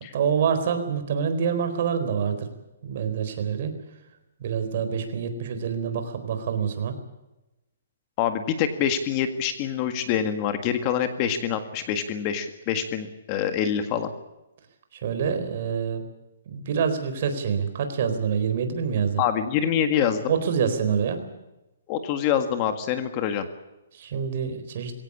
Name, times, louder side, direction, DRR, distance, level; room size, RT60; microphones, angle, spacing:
voice 1, 0.1-2.5 2.8-3.7 4.4-7.0 14.9-16.0 16.5-19.2 20.3-21.2 23.9-24.9, right 7 dB, 45° right, 8 dB, 4.1 m, -26 dB
voice 2, 8.2-14.1 19.2-20.3 21.9-23.5, left 9 dB, 25° left, 9 dB, 1.8 m, -25 dB
22.5 x 17.5 x 8.6 m, 0.98 s
hypercardioid pair, 170°, 0 cm